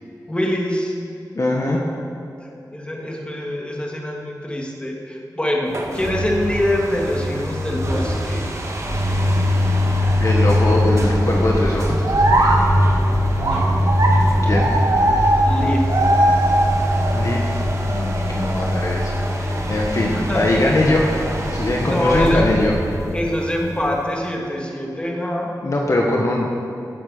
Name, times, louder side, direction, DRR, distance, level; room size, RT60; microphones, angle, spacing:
voice 1, 0.3-1.0 1.5-1.9 2.7-8.5 13.3-13.7 15.4-16.0 20.1-20.5 20.8-21.0 21.8-22.5 23.1-25.5, left 1 dB, 15° left, -2 dB, 2.7 m, -24 dB
voice 2, 1.3-1.8 10.2-12.0 14.5-14.7 17.1-17.6 17.9-21.1 21.4-22.7 25.6-26.5, left 2 dB, 50° left, -1 dB, 1.5 m, -21 dB
sound 1, 5.7-24.2, equal, 45° right, 1.9 m, -22 dB
sound 2, 6.3-17.1, right 1 dB, 80° right, 2.5 m, -23 dB
16.5 x 8.6 x 6.7 m, 2.7 s
wide cardioid pair, 100°, 7 cm